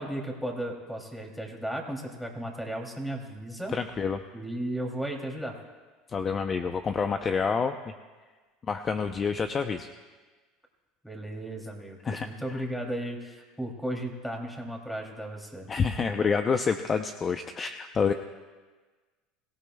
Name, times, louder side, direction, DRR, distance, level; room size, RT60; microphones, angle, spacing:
voice 1, 0.0-3.7 4.3-5.6 11.0-15.7, right 1 dB, ahead, 1 dB, 2.9 m, -35 dB
voice 2, 3.7-4.2 6.1-7.7 8.7-9.9 12.0-12.3 15.7-18.1, left 5 dB, 30° left, 7 dB, 0.6 m, -28 dB
23.5 x 17.0 x 2.3 m, 1.4 s
supercardioid pair, 115°, 0 cm